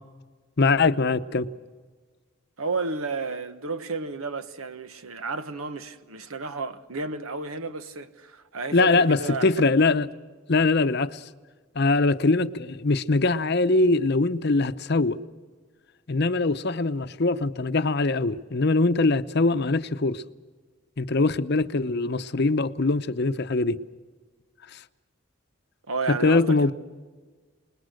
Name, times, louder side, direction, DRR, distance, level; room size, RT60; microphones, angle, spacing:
voice 1, 0.6-1.5 8.7-10.1 10.5-11.2 11.7-15.2 16.1-20.2 21.0-23.8 24.7-24.8 26.1-26.7, left 3 dB, 50° left, 0.7 m, -22 dB
voice 2, 2.6-9.7 25.9-26.7, right 3 dB, 90° right, 1.3 m, -32 dB
27.5 x 20.5 x 6.4 m
head